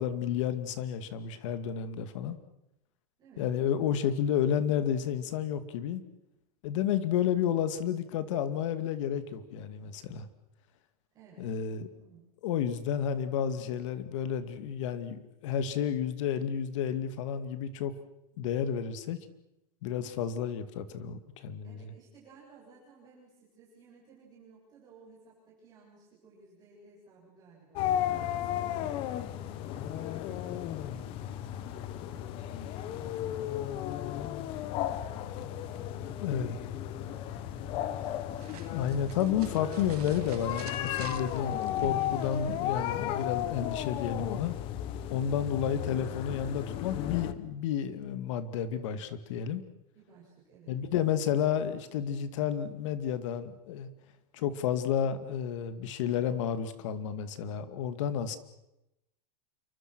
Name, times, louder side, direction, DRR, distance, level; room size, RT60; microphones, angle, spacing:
voice 1, 0.0-2.4 3.4-6.0 6.6-10.3 11.4-11.9 12.4-17.9 18.4-19.2 19.8-21.8 36.2-36.6 38.7-44.6 45.1-49.6 50.7-53.9 54.3-58.4, left 9 dB, 50° left, 12 dB, 2.3 m, -31 dB
voice 2, 11.1-11.5 11.9-12.2 21.6-27.9 28.4-33.7 34.9-37.8 45.2-45.5 49.9-50.7, right 4 dB, 20° right, -6 dB, 7.8 m, -56 dB
sound 1, 27.8-47.3, left 11 dB, 25° left, 1.1 m, -34 dB
sound 2, 38.0-43.0, right 12 dB, 75° right, 1.5 m, -48 dB
28.0 x 24.0 x 6.3 m, 0.88 s
supercardioid pair, 180°, 20 cm